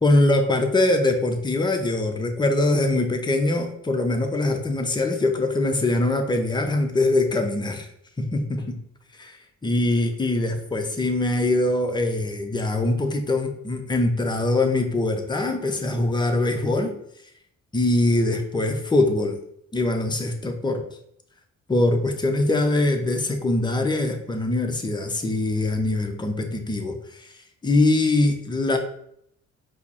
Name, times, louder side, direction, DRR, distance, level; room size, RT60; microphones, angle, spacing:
voice 1, 0.0-7.9 8.2-8.8 9.2-16.9 17.7-19.4 19.7-20.8 21.7-27.3 27.6-28.8, left 2 dB, 15° left, 4 dB, 0.5 m, -23 dB
5.0 x 2.0 x 2.9 m, 0.71 s
cardioid pair, 90°, 30 cm